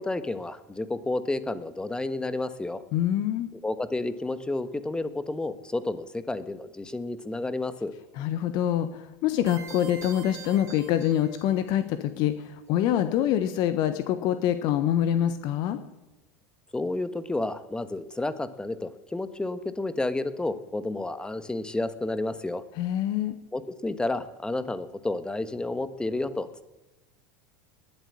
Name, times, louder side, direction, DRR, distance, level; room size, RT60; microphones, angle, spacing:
voice 1, 0.0-2.8 3.5-7.9 16.7-22.6 23.5-26.7, left 2 dB, 10° left, 13 dB, 1.3 m, -31 dB
voice 2, 2.9-3.5 8.2-15.8 22.8-23.4, left 11 dB, 50° left, 11 dB, 1.1 m, -25 dB
sound 1, 9.5-11.8, right 6 dB, 35° right, 3.4 m, -45 dB
20.0 x 7.7 x 8.5 m, 0.99 s
figure-of-eight pair, 80°, 9 cm